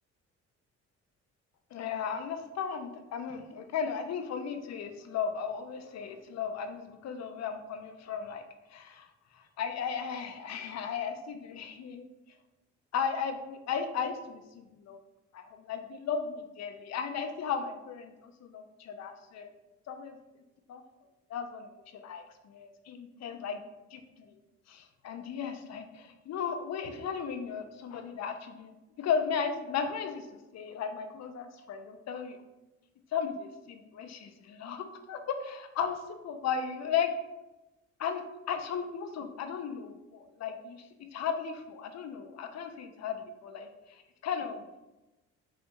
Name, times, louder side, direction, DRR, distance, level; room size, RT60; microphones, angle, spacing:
voice 1, 1.7-8.4 8.7-9.1 9.3-12.1 12.9-15.0 15.3-19.5 19.9-20.2 20.7-20.8 21.3-23.6 23.9-24.0 24.3-24.4 24.7-30.3 30.5-32.4 33.1-36.0 36.2-37.1 38.0-38.2 38.5-40.9 41.1-43.7 44.2-44.6, left 7 dB, 60° left, 7 dB, 0.6 m, -35 dB
5.6 x 2.6 x 3.0 m, 1.0 s
cardioid pair, 90°, 30 cm